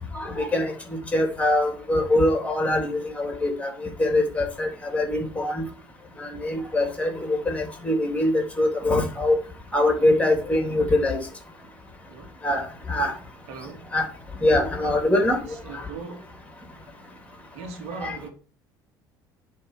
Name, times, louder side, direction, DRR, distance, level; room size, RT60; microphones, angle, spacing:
voice 1, 0.1-0.7 1.1-3.7 4.0-4.7 4.9-5.6 6.2-9.4 9.7-11.2 12.4-12.6 12.9-13.1 13.9-14.1 14.4-15.4 18.0-18.2, left 1 dB, 10° left, 3 dB, 3.3 m, -23 dB
voice 2, 13.5-13.9 15.4-16.2 17.5-18.3, right 4 dB, 65° right, 3 dB, 2.8 m, -39 dB
9.5 x 4.3 x 6.7 m, 0.38 s
hypercardioid pair, 60°, 11 cm